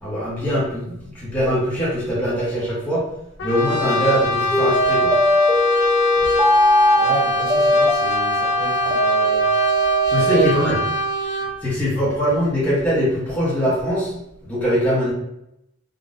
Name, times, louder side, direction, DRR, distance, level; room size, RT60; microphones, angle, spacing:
voice 1, 0.0-3.1 3.4-5.1 10.1-10.8 11.6-14.1 14.4-15.1, equal, 10° left, -9 dB, 0.9 m, -22 dB
Brass instrument, 3.4-11.6, left 1 dB, 55° left, 0.4 m, -23 dB
sound 1, 4.5-10.4, equal, 15° right, 0.5 m, -19 dB
voice 2, 6.9-9.5 10.1-10.5, right 3 dB, 55° right, -7 dB, 1.2 m, -29 dB
3.7 x 2.2 x 2.5 m, 0.82 s
head